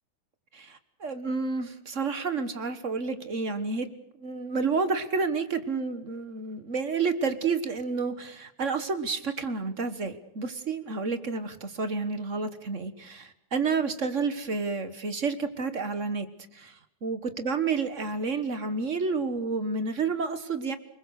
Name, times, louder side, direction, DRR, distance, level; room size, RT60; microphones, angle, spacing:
voice 1, 0.5-3.9 4.2-20.8, right 4 dB, 40° right, 11 dB, 1.1 m, -30 dB
29.0 x 20.5 x 6.4 m, 0.79 s
omnidirectional pair, 3.3 m